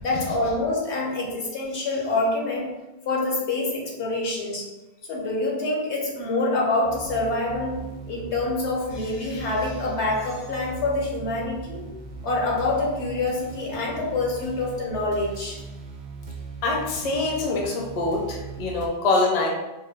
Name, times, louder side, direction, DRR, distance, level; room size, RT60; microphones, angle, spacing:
voice 1, 0.0-2.8 3.1-4.7 5.1-11.9 12.2-15.6, left 2 dB, 70° left, -2 dB, 1.2 m, -26 dB
sound 1, 6.8-18.9, right 5 dB, 55° right, 0.5 m, -39 dB
voice 2, 16.6-19.5, left 3 dB, 40° left, -1 dB, 0.6 m, -24 dB
4.4 x 2.0 x 3.6 m, 1.0 s
omnidirectional pair, 1.2 m